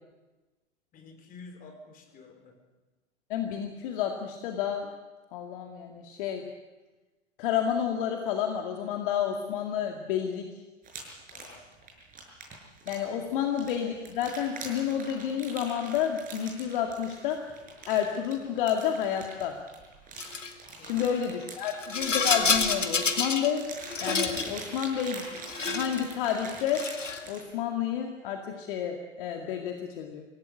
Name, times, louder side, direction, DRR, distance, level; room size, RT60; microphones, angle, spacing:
voice 1, 0.9-2.6 11.3-11.7 13.3-13.5 20.8-21.3, left 3 dB, 25° left, 5 dB, 4.3 m, -50 dB
voice 2, 3.3-4.9 5.3-6.4 7.4-10.5 12.9-17.5 17.9-19.6 20.8-23.7 24.0-25.3 25.7-26.9 27.3-30.2, left 9 dB, 45° left, 3 dB, 2.2 m, -30 dB
sound 1, 10.8-27.5, right 4 dB, 20° right, 6.7 m, -44 dB
Rattle, 20.2-20.5 21.6-23.5 23.8-24.5 25.3-26.0 26.6-27.3, left 4 dB, 80° left, 2.3 m, -28 dB
25.5 x 16.5 x 8.4 m, 1.2 s
figure-of-eight pair, 110°, 37 cm